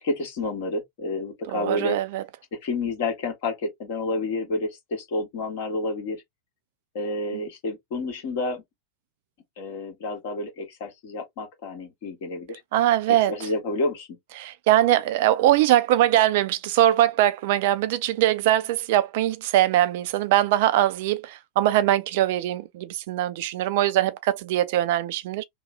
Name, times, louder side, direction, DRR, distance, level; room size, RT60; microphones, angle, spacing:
voice 1, 0.0-2.0 2.5-6.2 6.9-8.6 9.6-12.6 13.1-14.1, left 2 dB, 50° left, 1.4 m, -29 dB
voice 2, 1.5-2.2 12.7-13.3 14.4-25.4, right 13 dB, 50° right, 0.3 m, -22 dB
3.0 x 2.0 x 3.1 m
figure-of-eight pair, 90°, 0 cm